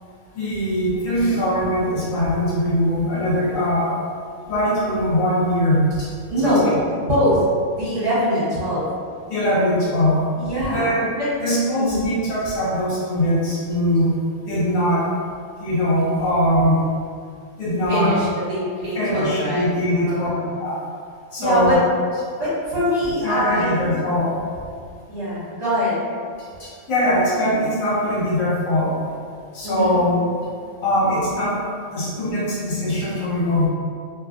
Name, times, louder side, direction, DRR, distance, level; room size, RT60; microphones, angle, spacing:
voice 1, 0.3-3.9 4.5-6.1 6.4-6.5 9.3-10.2 10.7-11.1 11.4-14.2 14.5-15.0 15.6-16.9 17.6-18.2 18.9-20.3 20.6-20.7 21.3-21.8 23.2-24.3 26.6-28.9 29.5-30.2 30.8-31.6 31.9-33.7, equal, 65° left, -9 dB, 1.4 m, -21 dB
voice 2, 6.3-8.8 10.4-10.9 11.2-11.3 11.8-12.0 17.9-20.5 21.4-21.8 22.4-23.9 25.1-26.0 29.6-30.0, equal, 45° right, -12 dB, 1.4 m, -23 dB
2.9 x 2.3 x 2.5 m, 2.2 s
omnidirectional pair, 1.5 m